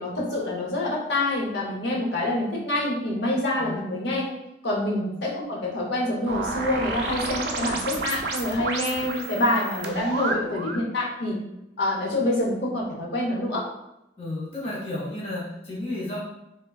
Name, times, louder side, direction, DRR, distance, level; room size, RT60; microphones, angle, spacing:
voice 1, 0.0-4.3 4.6-11.4 11.8-13.6, left 1 dB, 70° left, -2 dB, 0.7 m, -26 dB
sound 1, 6.3-10.9, right 3 dB, 60° right, 0.4 m, -31 dB
voice 2, 9.7-10.1 14.2-16.2, left 1 dB, 30° left, -5 dB, 0.5 m, -33 dB
3.4 x 2.1 x 2.3 m, 0.87 s
head